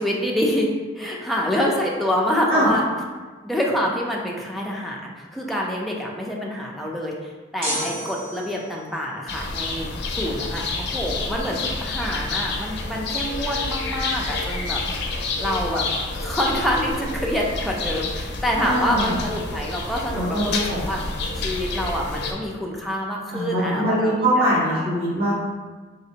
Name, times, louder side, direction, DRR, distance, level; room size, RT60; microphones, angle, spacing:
voice 1, 0.0-2.9 3.4-14.8 15.4-15.9 16.2-21.0 21.4-24.3 24.7-24.9, equal, ahead, -3 dB, 0.4 m, -26 dB
sound 1, 7.6-9.0, equal, 30° right, 1.1 m, -30 dB
sound 2, 9.3-22.3, left 3 dB, 60° left, 0.5 m, -29 dB
voice 2, 18.6-19.1 20.1-20.8 23.3-25.3, equal, 55° right, -14 dB, 1.4 m, -22 dB
4.0 x 3.3 x 2.8 m, 1.4 s
head